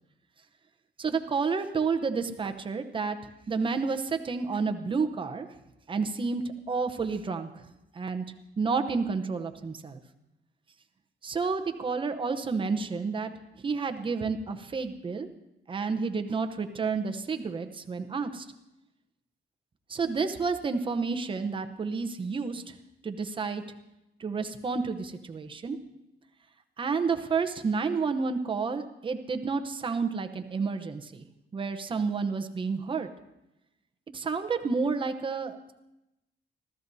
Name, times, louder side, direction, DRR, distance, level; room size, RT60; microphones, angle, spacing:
voice 1, 1.0-3.2 3.5-5.5 5.9-7.6 7.9-8.2 8.6-10.0 11.2-13.3 13.6-15.3 15.7-18.5 19.9-22.8 23.0-23.6 24.2-25.8 26.8-31.3 31.5-33.1 34.1-35.7, right 4 dB, 25° right, 7 dB, 0.8 m, -30 dB
25.0 x 14.0 x 2.7 m, 0.93 s
wide cardioid pair, 170°, 19 cm